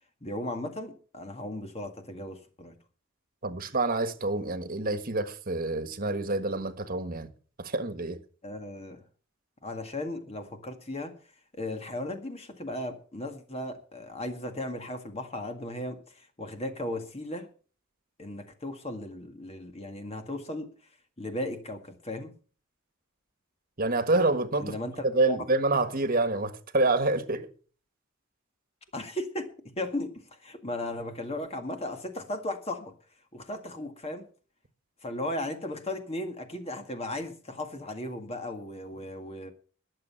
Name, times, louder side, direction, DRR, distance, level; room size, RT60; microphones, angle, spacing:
voice 1, 0.2-2.8 8.4-9.0 9.6-11.1 11.5-17.5 18.2-20.7 21.2-22.3 24.6-25.4 28.9-29.5 29.8-32.9 33.3-34.3 35.0-39.5, left 1 dB, 30° left, 1.9 m, -36 dB
voice 2, 3.4-7.3 7.6-8.2 23.8-24.7 25.0-27.5, right 2 dB, 45° right, 1.6 m, -27 dB
20.5 x 7.6 x 5.8 m
head